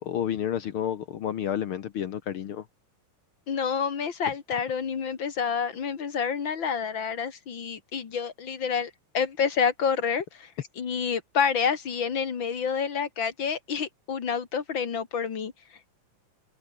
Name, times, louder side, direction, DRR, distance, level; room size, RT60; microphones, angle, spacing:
voice 1, 0.0-2.6, left 9 dB, 70° left, 1.2 m, -30 dB
voice 2, 3.5-15.5, left 6 dB, 40° left, 2.3 m, -28 dB
omnidirectional pair, 3.9 m